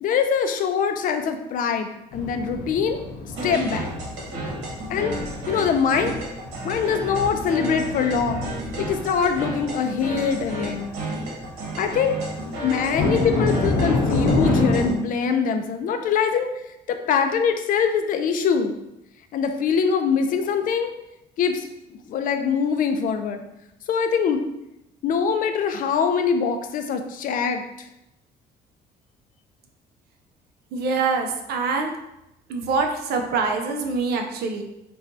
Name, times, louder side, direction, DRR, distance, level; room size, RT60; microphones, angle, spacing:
voice 1, 0.0-3.0 3.4-3.9 4.4-4.6 4.9-5.2 5.5-6.1 6.6-8.5 8.8-10.9 11.8-12.2 12.6-16.5 16.9-18.7 19.3-20.9 21.4-21.7 22.1-23.5 23.9-24.4 25.0-27.6, left 6 dB, 55° left, 6 dB, 0.4 m, -23 dB
sound 1, 2.1-14.9, left 2 dB, 85° left, 0.8 m, -28 dB
sound 2, 3.3-14.9, right 1 dB, 90° right, 1.2 m, -32 dB
voice 2, 30.7-31.9 32.5-34.6, right 4 dB, 70° right, 4 dB, 0.5 m, -24 dB
4.2 x 2.3 x 2.6 m, 0.87 s
cardioid pair, 110°, 17 cm